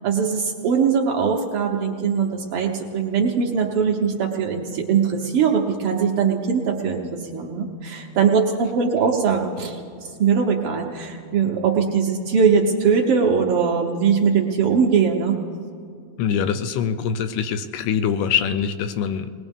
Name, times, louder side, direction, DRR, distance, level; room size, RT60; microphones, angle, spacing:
voice 1, 0.0-9.8 10.2-15.4, right 6 dB, 85° right, 0 dB, 1.2 m, -21 dB
voice 2, 16.2-19.3, left 7 dB, 80° left, 10 dB, 2.1 m, -24 dB
20.0 x 20.0 x 3.6 m, 2.3 s
omnidirectional pair, 3.9 m